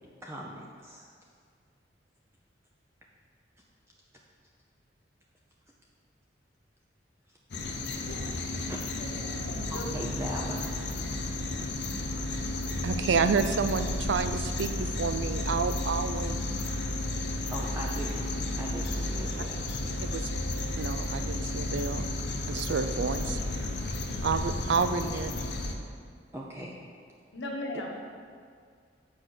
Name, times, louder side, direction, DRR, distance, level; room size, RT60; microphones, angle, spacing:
voice 1, 0.2-1.1 7.8-8.8 9.2-9.3 9.7-10.7 17.5-18.3 18.6-19.7 26.3-26.8, right 1 dB, 15° right, -2 dB, 0.6 m, -40 dB
sound 1, 7.5-25.7, left 2 dB, 60° left, 0.8 m, -32 dB
voice 2, 9.0-9.9 27.3-27.9, left 1 dB, 80° left, 0 dB, 1.3 m, -38 dB
voice 3, 12.8-16.4 20.0-20.3 20.8-22.1 22.5-23.4 24.2-25.3, right 5 dB, 70° right, 10 dB, 0.4 m, -29 dB
7.9 x 4.9 x 6.3 m, 2.1 s
head